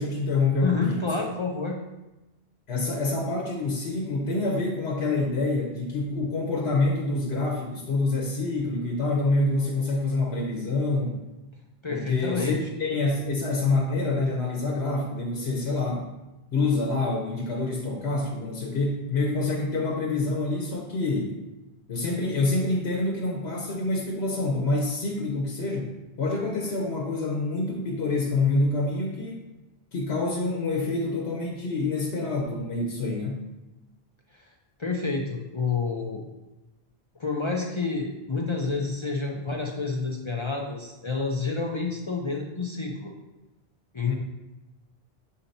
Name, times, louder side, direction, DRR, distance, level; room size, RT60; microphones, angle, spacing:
voice 1, 0.0-1.0 2.7-11.2 11.9-16.1 16.5-21.4 21.9-29.4 29.9-33.4 44.1-44.2, left 2 dB, 80° left, -1 dB, 1.1 m, -27 dB
voice 2, 0.6-1.8 11.8-12.6 34.3-34.4 34.8-36.2 37.2-43.1 43.9-44.1, left 4 dB, 40° left, -1 dB, 0.5 m, -29 dB
6.9 x 2.8 x 5.2 m, 1.0 s
omnidirectional pair, 1.1 m